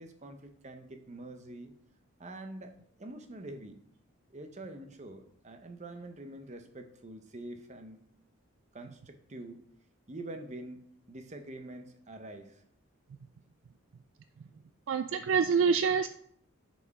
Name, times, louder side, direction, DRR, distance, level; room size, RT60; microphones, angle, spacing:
voice 1, 0.0-1.7 2.2-2.7 3.0-3.8 4.3-8.0 8.7-9.6 10.1-12.6, right 1 dB, 35° right, 6 dB, 0.8 m, -45 dB
voice 2, 14.9-16.1, right 6 dB, 60° right, 10 dB, 0.3 m, -26 dB
7.0 x 4.6 x 4.8 m, 0.66 s
head